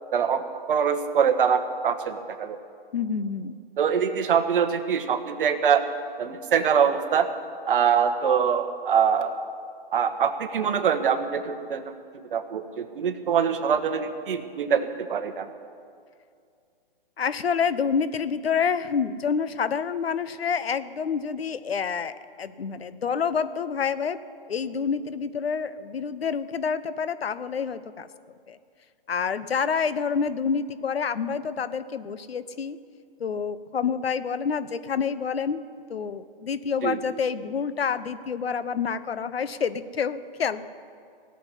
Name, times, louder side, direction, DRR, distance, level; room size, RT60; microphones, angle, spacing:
voice 1, 0.1-2.6 3.8-5.8 6.2-7.3 7.7-9.3 9.9-11.8 12.3-15.5 36.8-37.0, right 7 dB, 60° right, 8 dB, 1.4 m, -24 dB
voice 2, 2.9-3.5 17.2-24.2 24.5-28.1 28.5-28.6 29.1-32.8 33.2-35.6 35.9-40.6, left 6 dB, 85° left, 14 dB, 0.9 m, -28 dB
17.5 x 7.9 x 9.9 m, 2.3 s
hypercardioid pair, 140°, 30 cm